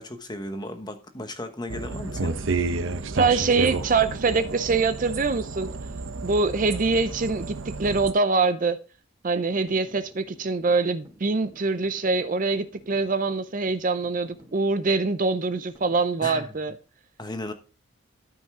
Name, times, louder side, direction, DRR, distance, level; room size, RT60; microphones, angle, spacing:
voice 1, 0.0-2.4 16.2-16.5 17.2-17.5, left 1 dB, 20° left, 1.0 m, -35 dB
sound 1, 1.7-8.1, right 3 dB, 65° right, 0.8 m, -31 dB
voice 2, 3.2-5.7 6.2-8.8 9.2-16.7, right 4 dB, 35° right, 0.5 m, -24 dB
sound 2, 9.3-16.7, equal, 15° right, 2.0 m, -53 dB
12.5 x 5.4 x 3.7 m
head